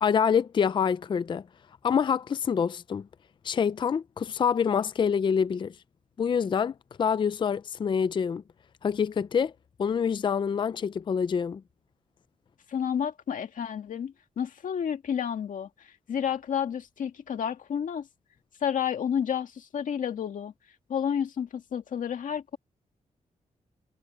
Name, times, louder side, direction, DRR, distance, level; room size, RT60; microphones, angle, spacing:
voice 1, 0.0-1.4 1.8-3.1 3.4-5.7 6.2-8.4 8.8-9.5 9.8-11.6, left 7 dB, 35° left, 0.4 m, -26 dB
voice 2, 12.7-18.1 18.6-20.5 20.9-22.6, left 8 dB, 75° left, 2.0 m, -30 dB
wide cardioid pair, 145°, 14 cm